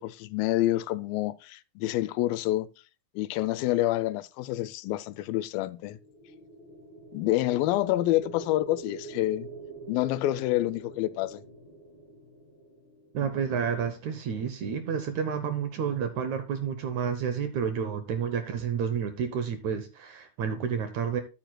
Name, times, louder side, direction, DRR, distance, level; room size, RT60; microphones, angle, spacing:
voice 1, 0.0-2.7 3.2-6.0 7.1-9.5 9.9-11.4, left 15 dB, 85° left, 2.3 m, -27 dB
sound 1, 5.8-13.9, right 3 dB, 45° left, 2.7 m, -46 dB
voice 2, 13.1-21.2, right 7 dB, 70° right, 1.9 m, -30 dB
13.0 x 7.7 x 2.2 m
omnidirectional pair, 4.1 m